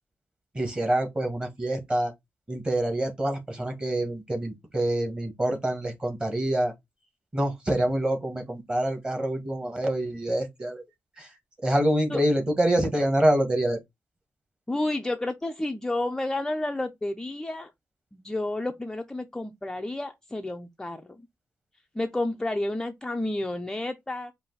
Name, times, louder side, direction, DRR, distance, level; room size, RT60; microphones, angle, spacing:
voice 1, 0.5-2.1 2.5-6.7 7.3-10.8 11.2-11.3 11.6-13.8, right 1 dB, 20° right, 1.2 m, -26 dB
voice 2, 14.7-17.7 18.1-21.2 21.9-24.3, left 2 dB, 10° left, 0.4 m, -30 dB
4.8 x 2.5 x 3.8 m
wide cardioid pair, 155°, 5 cm